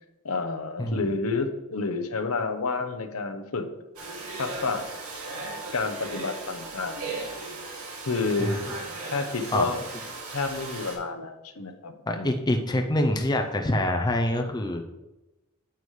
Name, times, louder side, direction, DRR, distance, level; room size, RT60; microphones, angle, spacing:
voice 1, 0.2-3.7 4.3-4.8 5.7-7.0 8.1-8.7 9.1-9.8 10.3-12.4, left 3 dB, 70° left, 6 dB, 0.9 m, -29 dB
Domestic sounds home sounds, 4.0-11.0, right 3 dB, 85° right, 2.5 m, -37 dB
voice 2, 12.1-14.8, left 1 dB, 20° left, 4 dB, 0.6 m, -25 dB
9.3 x 8.1 x 3.3 m, 1.0 s
head